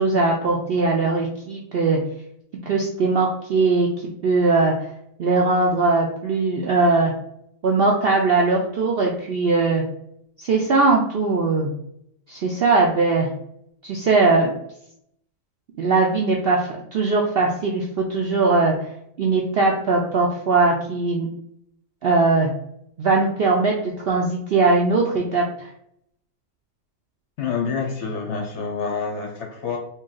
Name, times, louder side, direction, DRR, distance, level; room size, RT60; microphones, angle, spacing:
voice 1, 0.0-2.0 2.7-3.9 4.2-4.7 5.2-7.1 7.6-9.8 10.4-11.7 12.3-13.3 13.8-14.5 15.8-18.7 19.2-21.3 22.0-22.5 23.0-25.7, right 3 dB, 65° right, -1 dB, 0.6 m, -20 dB
voice 2, 27.4-29.8, left 5 dB, 65° left, 2 dB, 0.8 m, -27 dB
3.1 x 2.7 x 3.8 m, 0.71 s
omnidirectional pair, 1.6 m